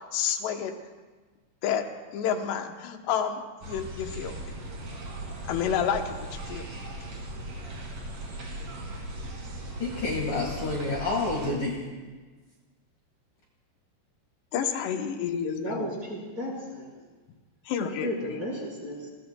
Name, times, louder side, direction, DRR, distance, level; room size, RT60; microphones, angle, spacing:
voice 1, 0.1-0.8 1.6-1.9 2.1-4.3 5.4-6.7 14.5-15.9 17.7-18.1, left 8 dB, 75° left, 5 dB, 2.7 m, -29 dB
sound 1, 3.6-11.5, right 1 dB, 40° right, 2.7 m, -38 dB
voice 2, 9.8-11.9, left 3 dB, 55° left, -2 dB, 2.8 m, -29 dB
voice 3, 15.6-16.9 18.0-19.1, equal, 20° right, -4 dB, 4.7 m, -34 dB
29.5 x 21.5 x 2.3 m, 1.3 s
omnidirectional pair, 5.6 m